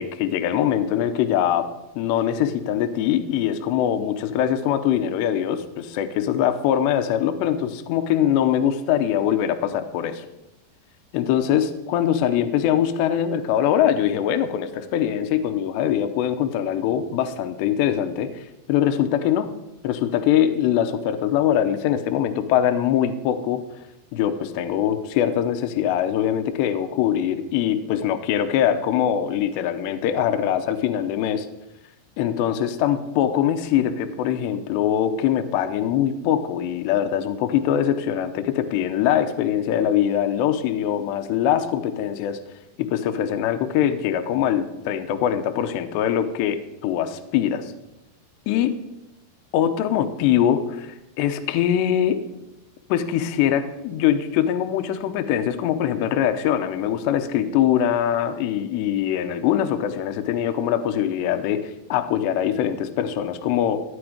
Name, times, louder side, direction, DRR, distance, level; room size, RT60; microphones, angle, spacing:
voice 1, 0.0-10.3 11.1-18.4 18.7-19.5 19.8-23.6 24.1-31.5 32.2-42.4 42.8-47.7 48.5-48.8 49.5-52.2 52.9-63.8, left 10 dB, 80° left, 9 dB, 2.8 m, -22 dB
16.0 x 10.5 x 5.0 m, 0.92 s
omnidirectional pair, 5.4 m